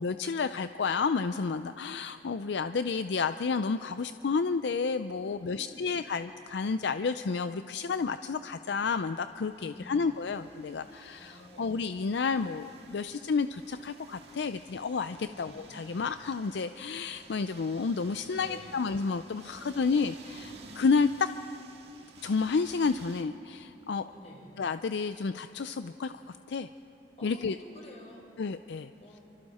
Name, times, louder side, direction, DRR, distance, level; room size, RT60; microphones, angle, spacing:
voice 1, 0.0-21.3 22.2-24.1 24.6-26.1 26.5-26.7 27.2-27.6 28.4-28.9, left 5 dB, 70° left, 11 dB, 0.4 m, -30 dB
voice 2, 5.2-5.9 9.6-10.1 11.2-11.7 15.2-15.5 18.3-18.7 19.5-20.0 24.1-24.5 27.2-28.3 29.0-29.2, equal, 35° left, 0 dB, 4.3 m, -51 dB
sound 1, 8.8-23.2, right 3 dB, 65° right, 2.0 m, -53 dB
29.0 x 25.0 x 4.3 m, 2.9 s
head